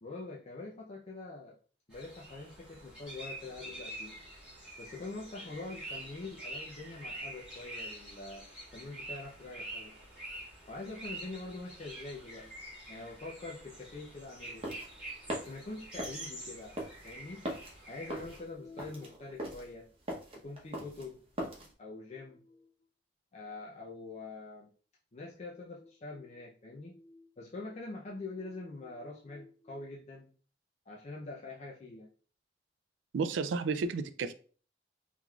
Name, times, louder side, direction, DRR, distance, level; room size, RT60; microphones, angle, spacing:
voice 1, 0.0-1.6 1.9-4.3 4.8-8.5 8.7-9.9 10.7-12.6 12.9-14.7 15.3-16.8 17.0-17.4 17.9-19.9 20.3-21.2 21.6-22.7 23.3-24.7 25.1-30.3 30.9-32.1, left 3 dB, 40° left, 0.5 m, -45 dB
sound 1, 1.9-18.4, right 1 dB, 5° right, 1.6 m, -46 dB
sound 2, 14.4-21.7, right 1 dB, 35° right, 0.8 m, -41 dB
voice 2, 33.1-34.3, right 4 dB, 90° right, 0.3 m, -32 dB
3.6 x 3.1 x 2.3 m
head